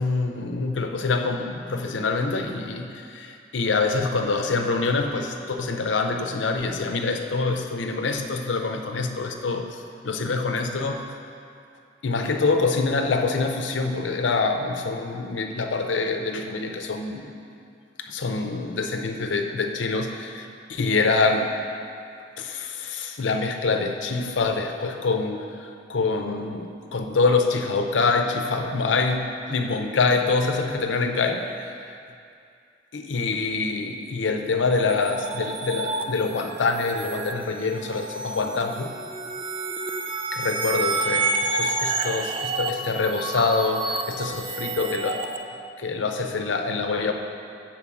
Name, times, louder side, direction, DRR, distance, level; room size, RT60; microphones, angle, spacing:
voice 1, 0.0-11.0 12.0-17.3 18.0-21.5 22.4-32.0 32.9-38.9 40.3-45.4 45.8-47.1, left 4 dB, 85° left, 4 dB, 0.6 m, -25 dB
sound 1, 34.7-45.4, right 3 dB, 30° right, 0.4 m, -29 dB
7.0 x 4.5 x 6.1 m, 2.4 s
head